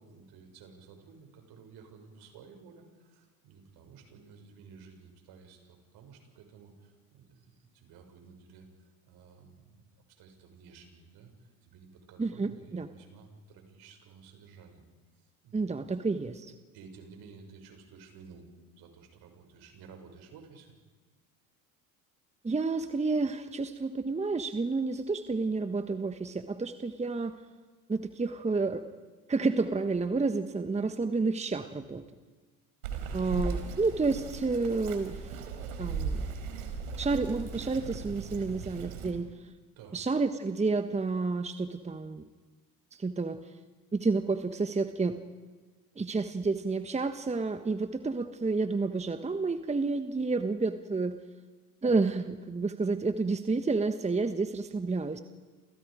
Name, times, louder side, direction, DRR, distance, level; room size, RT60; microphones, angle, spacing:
voice 1, 0.0-14.8 15.1-15.6 16.7-18.4 18.8-20.7 39.8-40.0, right 5 dB, 60° right, 4 dB, 6.5 m, -53 dB
voice 2, 12.2-12.9 15.5-16.5 22.4-27.3 27.9-28.8 29.3-32.0 33.1-35.3 35.8-36.2 37.0-39.3 39.9-42.3 42.9-43.4 43.9-45.2 46.0-51.2 51.8-55.2, right 3 dB, 15° right, 9 dB, 1.3 m, -30 dB
Bird vocalization bird call bird song, 32.8-39.1, right 4 dB, 80° right, 4.3 m, -37 dB
29.0 x 28.5 x 5.1 m, 1.3 s
hypercardioid pair, 70°, 43 cm